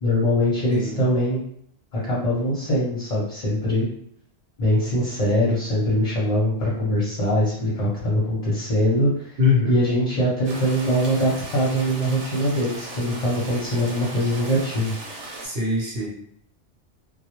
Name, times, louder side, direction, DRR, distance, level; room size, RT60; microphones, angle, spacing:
voice 1, 0.0-1.4 1.9-3.9 4.6-9.4 9.7-14.9, equal, 40° left, -7 dB, 0.6 m, -22 dB
voice 2, 0.7-1.0 9.4-9.8 15.4-16.1, left 4 dB, 55° right, -4 dB, 0.9 m, -22 dB
sound 1, 10.4-15.5, right 2 dB, 90° right, 1.0 m, -37 dB
2.1 x 2.1 x 2.9 m, 0.64 s
omnidirectional pair, 1.2 m